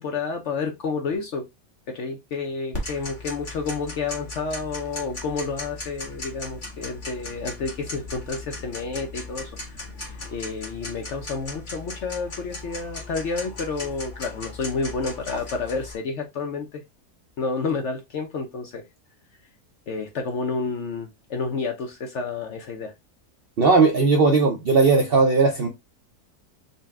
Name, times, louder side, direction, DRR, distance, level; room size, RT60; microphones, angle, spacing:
voice 1, 0.0-1.4 1.9-16.8 17.4-18.8 19.9-22.9, left 4 dB, 65° left, 0.8 m, -30 dB
Tick-tock, 2.7-15.9, left 2 dB, 35° left, 1.3 m, -37 dB
voice 2, 23.6-25.7, right 4 dB, 65° right, 0.6 m, -17 dB
4.0 x 2.2 x 3.4 m
omnidirectional pair, 1.7 m